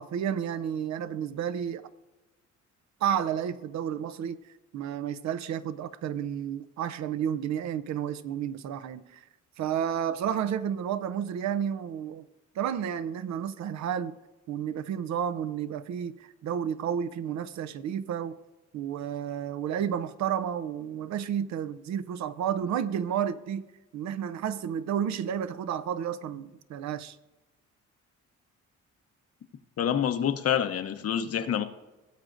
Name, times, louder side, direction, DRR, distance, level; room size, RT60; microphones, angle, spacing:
voice 1, 0.0-1.8 3.0-4.4 4.7-9.2 9.6-12.3 12.6-14.2 14.5-18.4 18.7-23.7 23.9-27.2, right 9 dB, 65° right, 0.6 m, -31 dB
voice 2, 29.8-31.6, left 9 dB, 50° left, 0.8 m, -27 dB
17.5 x 7.4 x 2.6 m
cardioid pair, 90°, 30 cm